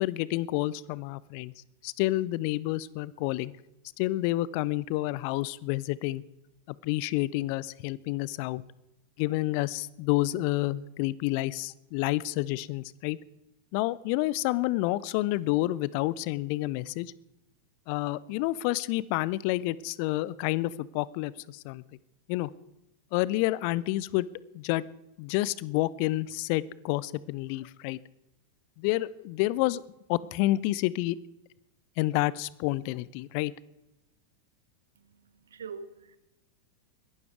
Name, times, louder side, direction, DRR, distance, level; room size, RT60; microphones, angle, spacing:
voice 1, 0.0-1.5 1.8-3.5 4.0-6.2 6.8-8.6 9.2-13.2 13.7-17.1 17.9-21.8 22.3-22.5 23.1-24.3 24.5-24.8 25.2-28.0 28.8-29.8 30.1-31.2 32.0-33.5, left 17 dB, 45° left, 0.5 m, -29 dB
voice 2, 35.0-36.2, right 5 dB, 65° right, 1.1 m, -44 dB
21.5 x 12.0 x 4.7 m
figure-of-eight pair, 90°, 0 cm